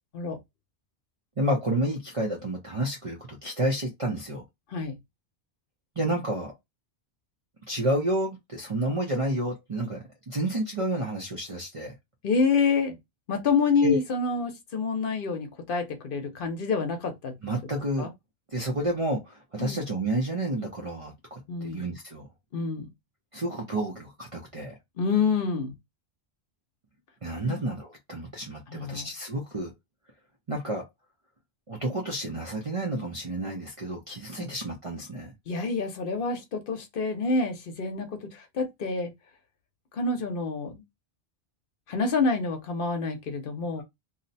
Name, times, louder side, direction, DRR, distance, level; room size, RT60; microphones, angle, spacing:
voice 1, 1.4-4.4 6.0-6.5 7.7-11.9 13.8-14.0 17.4-18.1 18.5-22.3 23.3-24.7 27.2-29.7 30.5-30.8 31.7-35.3, right 1 dB, 40° right, 0.6 m, -30 dB
voice 2, 12.2-13.0 13.3-17.3 18.0-18.1 19.6-19.8 21.5-21.8 22.5-22.9 25.0-25.7 27.4-27.6 28.7-29.1 34.4-34.5 35.5-39.1 39.9-40.8 41.9-43.8, left 4 dB, 60° left, 0.9 m, -27 dB
2.7 x 2.1 x 4.0 m
omnidirectional pair, 1.1 m